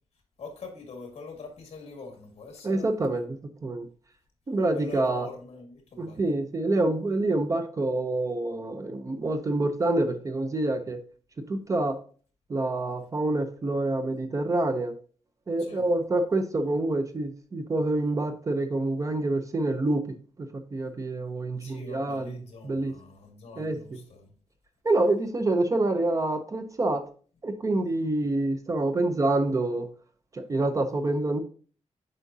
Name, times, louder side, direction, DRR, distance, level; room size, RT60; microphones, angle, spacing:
voice 1, 0.4-2.9 4.7-6.3 15.6-15.8 21.6-24.3, left 4 dB, 55° left, 1.9 m, -44 dB
voice 2, 2.6-3.9 4.5-5.3 6.0-11.0 11.5-12.0 12.5-14.9 15.5-20.0 20.4-22.3 22.6-22.9 23.6-23.8 24.8-27.0 27.4-29.9 30.3-31.4, right 2 dB, 30° right, 0.5 m, -27 dB
8.1 x 5.0 x 2.7 m
wide cardioid pair, 175°, 12 cm